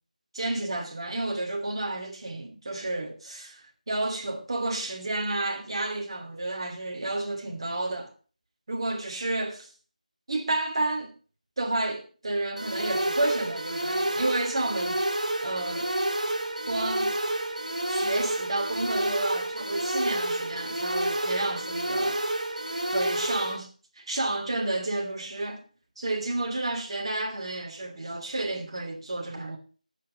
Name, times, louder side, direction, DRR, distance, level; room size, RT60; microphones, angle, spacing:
voice 1, 0.3-8.1 8.7-9.7 10.3-11.1 11.6-15.0 15.4-15.9 16.7-17.1 17.9-22.2 22.9-23.7 23.9-25.6 26.0-29.6, right 2 dB, 40° right, 2.9 m, -31 dB
sound 1, 12.6-23.6, right 1 dB, 60° right, 2.6 m, -29 dB
10.5 x 8.0 x 5.6 m
figure-of-eight pair, 165°, 4 cm